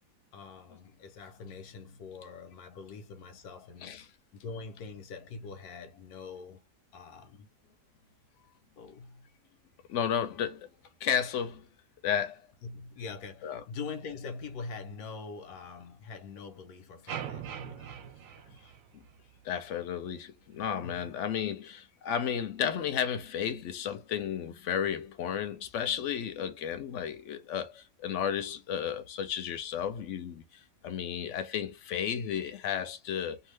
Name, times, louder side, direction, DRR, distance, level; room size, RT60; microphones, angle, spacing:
voice 1, 0.3-4.0 4.3-6.6 6.9-7.5 8.8-9.3 12.6-18.7 20.8-21.1, left 4 dB, 90° left, 1.2 m, -44 dB
voice 2, 9.9-10.7 11.0-11.7 12.0-12.4 13.4-13.6 19.4-30.4 30.8-33.4, left 8 dB, 65° left, 0.8 m, -33 dB
sound 1, 17.1-19.4, right 8 dB, 70° right, 0.9 m, -41 dB
2.7 x 2.4 x 3.2 m
omnidirectional pair, 1.6 m